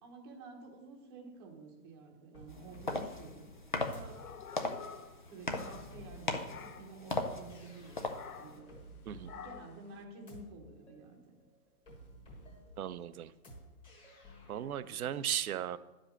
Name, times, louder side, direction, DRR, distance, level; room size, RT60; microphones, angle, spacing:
voice 1, 0.0-4.2 5.2-8.1 8.4-8.9 9.3-11.2 14.8-15.2, right 3 dB, 15° right, 1 dB, 0.9 m, -51 dB
sound 1, 2.3-15.0, equal, 10° left, 1.3 m, -55 dB
sound 2, 2.5-8.6, left 2 dB, 35° left, 0.4 m, -39 dB
sound 3, 3.7-6.2 6.5-7.0 8.1-8.7 9.2-9.8, left 7 dB, 60° left, 0.9 m, -50 dB
voice 2, 12.8-13.3 14.5-15.8, right 10 dB, 60° right, 15 dB, 0.6 m, -36 dB
10.5 x 5.1 x 6.5 m, 1.1 s
hypercardioid pair, 160°, 49 cm